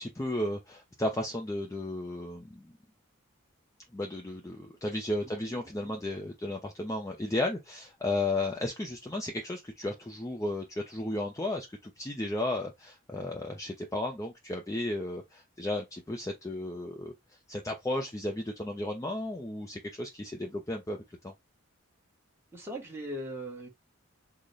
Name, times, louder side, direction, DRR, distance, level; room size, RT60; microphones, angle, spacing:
voice 1, 0.0-2.7 3.9-17.1 17.5-21.0 21.2-21.3, left 1 dB, 15° left, 0.4 m, -34 dB
voice 2, 22.5-23.7, equal, 10° right, 1.0 m, -38 dB
3.8 x 2.1 x 3.1 m
head